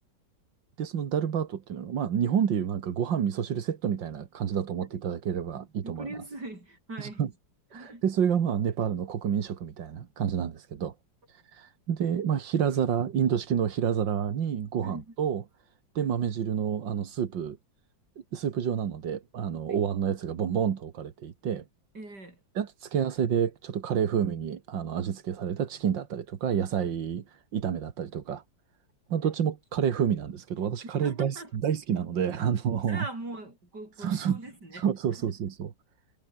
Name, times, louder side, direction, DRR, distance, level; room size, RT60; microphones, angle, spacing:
voice 1, 0.8-6.1 7.0-7.3 7.7-10.9 11.3-15.4 16.0-17.6 18.3-21.6 22.6-28.4 29.1-33.1 34.0-34.4 34.7-35.7, right 8 dB, 85° right, 2.3 m, -29 dB
voice 2, 5.8-7.3 7.7-8.0 14.8-15.1 19.7-19.8 21.9-22.4 29.2-29.3 31.0-31.5 32.9-35.2, right 2 dB, 65° right, 8.5 m, -41 dB
omnidirectional pair, 2.0 m